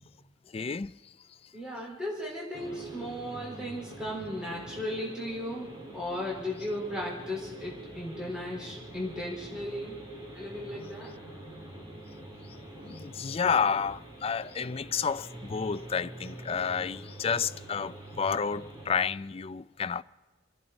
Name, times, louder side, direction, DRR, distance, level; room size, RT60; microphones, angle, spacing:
voice 1, 0.5-0.9 12.8-20.0, left 6 dB, 30° left, 0.4 m, -30 dB
voice 2, 1.5-10.1 10.3-11.1, left 1 dB, 5° right, 4.1 m, -36 dB
sound 1, 2.5-18.9, right 1 dB, 20° right, 3.2 m, -45 dB
29.5 x 11.0 x 4.0 m
head